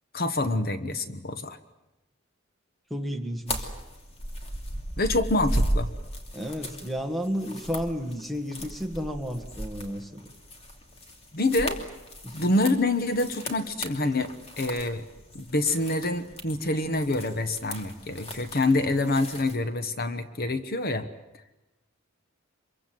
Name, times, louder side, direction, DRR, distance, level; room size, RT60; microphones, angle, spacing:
voice 1, 0.1-1.6 5.0-5.9 11.3-11.8 12.3-15.0 15.3-21.1, left 2 dB, 45° left, 10 dB, 1.2 m, -26 dB
voice 2, 2.9-3.7 6.3-10.2 12.2-12.4, equal, ahead, 6 dB, 1.7 m, -32 dB
sound 1, 3.5-19.6, equal, 30° left, 2.7 m, -36 dB
26.0 x 23.0 x 7.8 m, 0.98 s
head